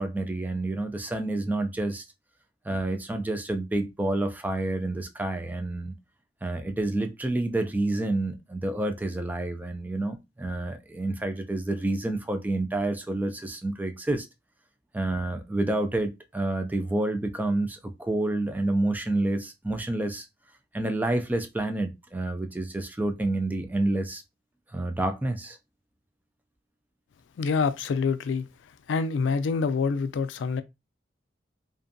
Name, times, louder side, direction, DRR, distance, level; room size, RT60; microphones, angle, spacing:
voice 1, 0.0-2.1 2.7-5.9 6.4-14.3 14.9-20.3 20.7-24.2 24.7-25.6, right 2 dB, 10° right, 0.3 m, -29 dB
voice 2, 27.4-28.5 28.9-30.6, left 5 dB, 90° left, 0.3 m, -26 dB
2.5 x 2.2 x 2.5 m
head